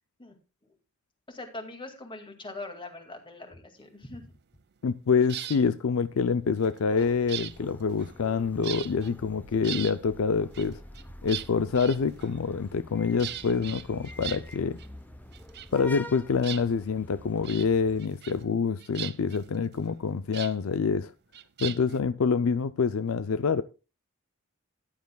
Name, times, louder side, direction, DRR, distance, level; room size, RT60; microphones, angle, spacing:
voice 1, 1.3-4.3, left 2 dB, 25° left, 2.1 m, -42 dB
voice 2, 4.8-10.8 11.2-14.8 15.7-21.1 21.6-23.6, left 5 dB, 70° left, 0.5 m, -26 dB
sound 1, 5.2-5.6 6.6-8.4 8.6-9.1 9.4-10.0 10.5-12.5 13.2-14.9 15.1-16.1 16.4-17.1 17.4-17.7 18.0-18.5 18.8-20.5 21.3-22.0, right 12 dB, 50° right, 0.5 m, -39 dB
sound 2, 6.9-18.0, left 1 dB, 10° left, 0.7 m, -46 dB
14.5 x 10.5 x 2.3 m
head